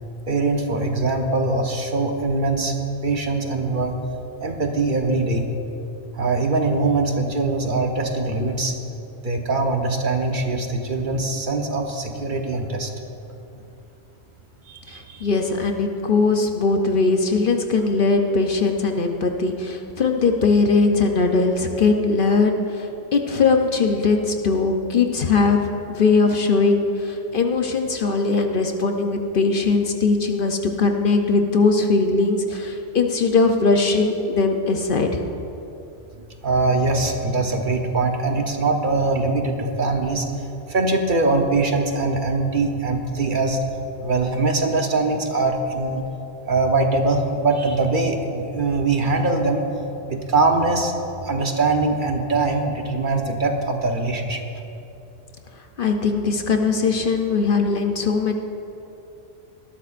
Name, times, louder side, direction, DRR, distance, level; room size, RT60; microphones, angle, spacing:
voice 1, 0.3-2.7 3.0-3.9 4.4-5.5 6.2-8.7 9.2-12.9 14.7-15.3 36.4-40.3 40.7-43.6 44.0-46.0 46.5-49.6 50.1-50.9 51.2-54.4, right 3 dB, 50° right, 3 dB, 1.0 m, -22 dB
voice 2, 14.9-22.9 23.1-35.2 55.8-58.3, left 4 dB, 55° left, 4 dB, 0.8 m, -20 dB
19.0 x 12.5 x 2.5 m, 2.8 s
omnidirectional pair, 1.2 m